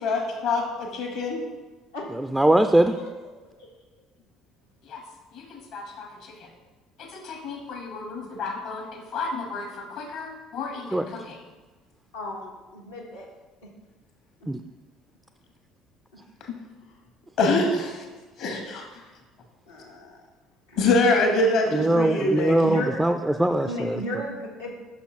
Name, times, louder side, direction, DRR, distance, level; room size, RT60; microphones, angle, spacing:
voice 1, 0.0-1.4 4.9-5.0 5.3-6.3 7.1-11.4 16.4-16.5 17.4-18.0 18.4-18.8 20.8-22.5, left 2 dB, 60° left, 2 dB, 1.2 m, -26 dB
voice 2, 2.2-2.9 10.9-11.0 14.5-14.6 21.7-24.0, right 1 dB, 5° right, 8 dB, 0.3 m, -21 dB
voice 3, 2.9-3.7 12.1-13.3 13.6-13.7 14.4-14.5 19.7-20.2 20.7-20.9 22.6-23.0 23.6-24.7, equal, 90° left, -4 dB, 1.0 m, -35 dB
5.7 x 5.6 x 4.2 m, 1.2 s
hypercardioid pair, 60°, 0 cm